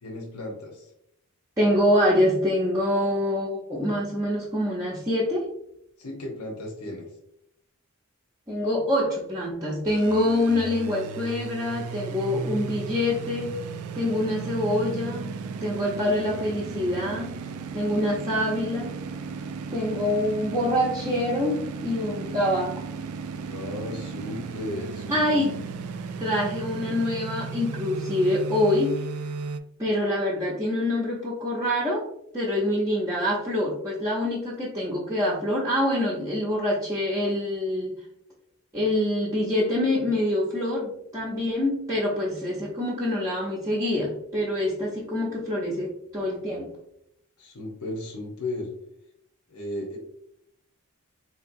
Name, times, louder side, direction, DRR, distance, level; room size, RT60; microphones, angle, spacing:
voice 1, 0.0-0.9 6.0-7.1 23.5-25.4 47.4-48.7 49.5-50.0, left 1 dB, 85° left, -1 dB, 0.9 m, -35 dB
voice 2, 1.6-5.5 8.5-13.6 13.9-15.3 15.6-17.3 17.7-19.0 19.7-22.9 25.1-25.6 26.2-29.0 29.8-32.0 32.3-38.0 38.7-46.7, left 1 dB, 15° right, -7 dB, 0.6 m, -25 dB
sound 1, 9.9-29.6, right 5 dB, 85° right, 0.3 m, -35 dB
3.9 x 2.8 x 2.5 m, 0.76 s
head